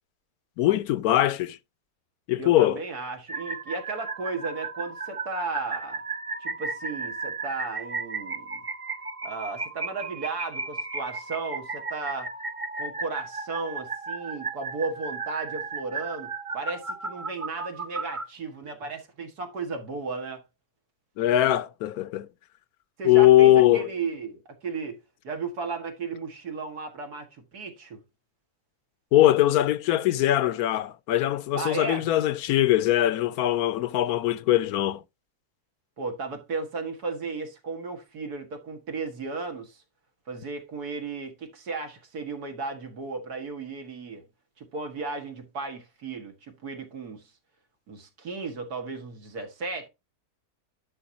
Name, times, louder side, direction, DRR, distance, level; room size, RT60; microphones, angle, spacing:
voice 1, 0.6-1.6 2.3-2.8 21.2-22.3 23.0-23.9 29.1-35.0, left 13 dB, 75° left, 1.1 m, -21 dB
voice 2, 2.4-6.0 6.4-8.6 9.2-12.3 12.8-20.4 23.0-25.0 25.2-28.0 31.5-32.1 36.0-39.8 40.3-44.2 44.6-47.2 47.9-49.9, right 4 dB, 80° right, 2.3 m, -35 dB
sound 1, 3.3-18.3, right 4 dB, 30° right, 0.6 m, -35 dB
11.0 x 5.6 x 2.8 m
omnidirectional pair, 1.6 m